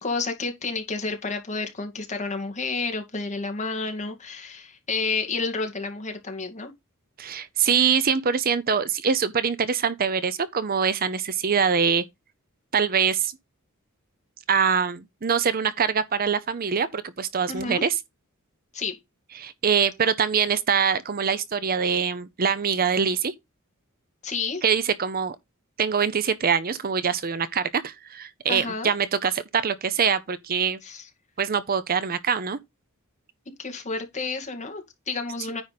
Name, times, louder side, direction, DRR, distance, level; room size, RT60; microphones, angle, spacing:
voice 1, 0.0-6.7 17.5-17.8 18.7-19.0 24.2-24.6 28.5-28.9 30.8-31.1 33.6-35.6, left 4 dB, 35° left, 2.1 m, -30 dB
voice 2, 7.2-12.0 12.7-13.3 14.5-17.9 19.4-23.3 24.6-25.4 25.8-30.8 31.4-32.6, right 6 dB, 45° right, 0.7 m, -24 dB
9.6 x 5.0 x 4.1 m
head